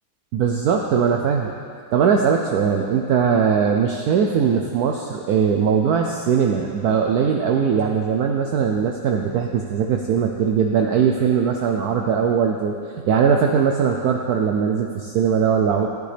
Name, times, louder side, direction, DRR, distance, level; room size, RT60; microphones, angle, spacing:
voice 1, 0.3-1.5 1.9-16.0, right 7 dB, 75° right, 2 dB, 0.9 m, -20 dB
13.0 x 8.5 x 3.4 m, 2.2 s
omnidirectional pair, 2.1 m